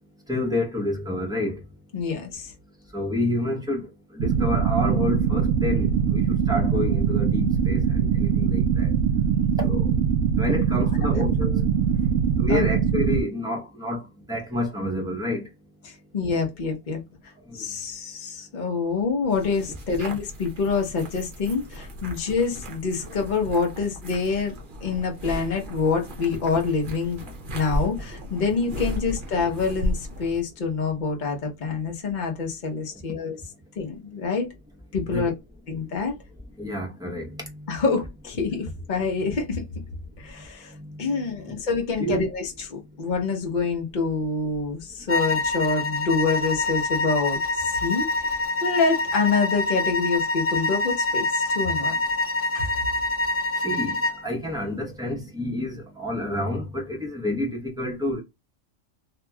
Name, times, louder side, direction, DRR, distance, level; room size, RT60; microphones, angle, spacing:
voice 1, 0.3-1.6 2.9-8.9 9.6-9.9 10.4-11.7 12.4-15.5 17.5-17.6 35.1-35.3 36.6-37.8 38.5-38.7 40.7-41.6 42.0-42.3 53.6-58.2, left 1 dB, 5° right, 0.6 m, -29 dB
voice 2, 1.9-2.5 12.5-12.6 15.8-17.0 17.5-27.2 27.5-33.4 33.8-34.5 34.9-35.3 35.7-36.1 37.7-39.6 40.2-51.9 52.5-52.9, left 4 dB, 40° left, 0.9 m, -26 dB
sound 1, 4.2-13.2, right 7 dB, 75° right, 1.0 m, -22 dB
sound 2, 19.3-30.4, equal, 45° right, 0.8 m, -35 dB
sound 3, 45.1-54.2, left 2 dB, 70° left, 0.3 m, -26 dB
2.8 x 2.7 x 2.2 m
omnidirectional pair, 1.3 m